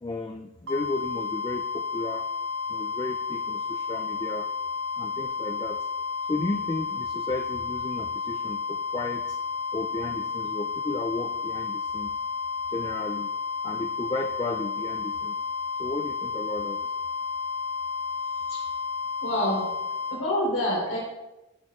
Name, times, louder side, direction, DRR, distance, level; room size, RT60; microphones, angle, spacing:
voice 1, 0.0-2.3 2.7-4.5 5.0-5.9 6.3-9.4 9.7-12.1 12.7-13.3 13.6-15.4 15.8-16.9, left 2 dB, 20° left, 5 dB, 0.3 m, -34 dB
sound 1, 0.7-20.2, left 5 dB, 55° right, 1.9 m, -31 dB
voice 2, 19.2-19.7 20.1-21.0, left 1 dB, 55° left, -8 dB, 3.8 m, -27 dB
14.0 x 8.6 x 2.4 m, 1.0 s
head